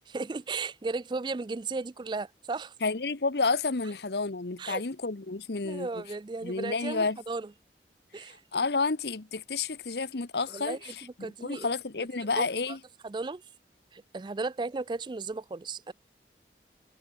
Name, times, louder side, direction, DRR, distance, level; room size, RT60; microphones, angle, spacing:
voice 1, 0.1-2.7 4.6-4.8 5.6-7.5 8.1-8.4 10.5-11.7 12.4-12.8 13.0-13.4 13.9-15.9, right 3 dB, 25° right, 0.3 m, -35 dB
voice 2, 2.8-6.0 6.4-7.2 8.2-12.8, left 4 dB, 70° left, 1.1 m, -30 dB
head